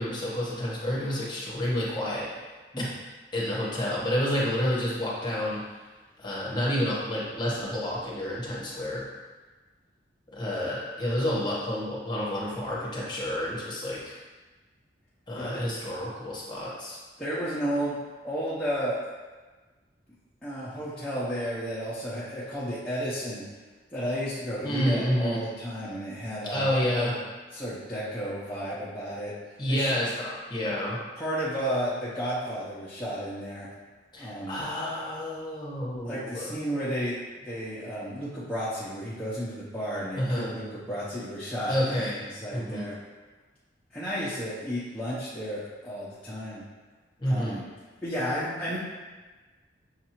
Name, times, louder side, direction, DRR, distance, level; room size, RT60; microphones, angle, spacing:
voice 1, 0.0-2.3 2.8-2.9 3.3-5.7 6.2-9.0 10.3-14.2 15.3-17.0 24.6-25.4 26.5-27.1 29.6-31.0 34.1-36.5 40.2-40.5 41.7-42.1 42.5-42.8 47.2-47.5, equal, 25° left, -6 dB, 1.0 m, -29 dB
voice 2, 17.2-18.0 18.2-19.0 20.4-23.4 23.9-27.1 27.5-29.3 29.7-29.9 31.2-33.7 34.2-34.6 36.0-43.0 43.9-46.6 47.2-47.6 48.0-48.8, equal, 5° left, -12 dB, 0.7 m, -32 dB
6.4 x 2.6 x 2.9 m, 1.3 s
head